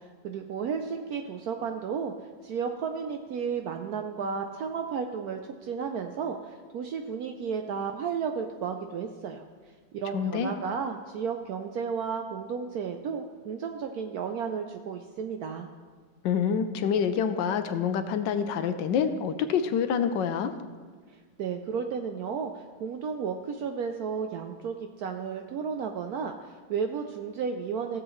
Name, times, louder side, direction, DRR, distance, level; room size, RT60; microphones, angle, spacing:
voice 1, 0.0-2.1 2.4-9.4 9.9-15.7 21.4-28.0, right 6 dB, 75° right, 5 dB, 0.9 m, -33 dB
voice 2, 10.1-10.5 16.2-20.5, left 7 dB, 75° left, 10 dB, 1.2 m, -27 dB
15.5 x 7.5 x 3.1 m, 1.5 s
omnidirectional pair, 2.1 m